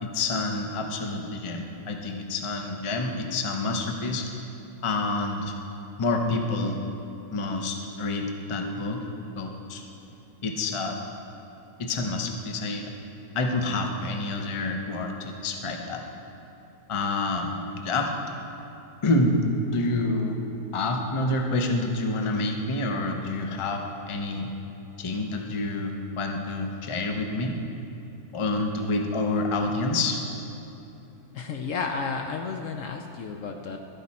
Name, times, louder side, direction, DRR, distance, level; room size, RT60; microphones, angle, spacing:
voice 1, 0.0-4.3 4.8-5.5 6.0-6.8 7.3-9.0 9.4-9.8 10.4-11.0 11.8-12.9 13.3-16.0 16.9-18.1 19.0-19.4 19.7-20.4 20.7-23.8 24.1-24.5 25.0-27.5 28.3-30.2, left 2 dB, 30° left, 3 dB, 0.6 m, -28 dB
voice 2, 31.3-33.8, left 5 dB, 65° left, 4 dB, 0.8 m, -32 dB
12.5 x 8.9 x 4.2 m, 2.9 s
omnidirectional pair, 1.6 m